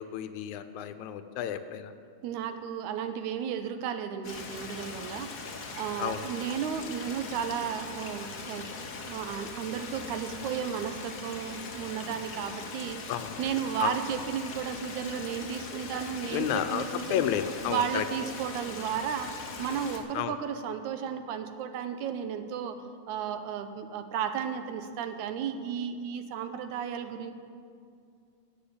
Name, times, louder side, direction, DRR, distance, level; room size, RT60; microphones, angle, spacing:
voice 1, 0.0-1.9 6.0-6.3 13.1-13.4 13.8-14.0 16.3-18.1 20.1-20.4, left 10 dB, 85° left, 10 dB, 2.1 m, -31 dB
voice 2, 2.2-5.4 5.7-8.7 9.0-13.1 13.4-17.2 17.7-19.3 19.6-22.8 23.1-27.3, right 8 dB, 90° right, 9 dB, 2.2 m, -34 dB
Stream, 4.2-20.0, left 4 dB, 60° left, 1.0 m, -41 dB
16.5 x 5.6 x 8.6 m, 2.3 s
omnidirectional pair, 3.3 m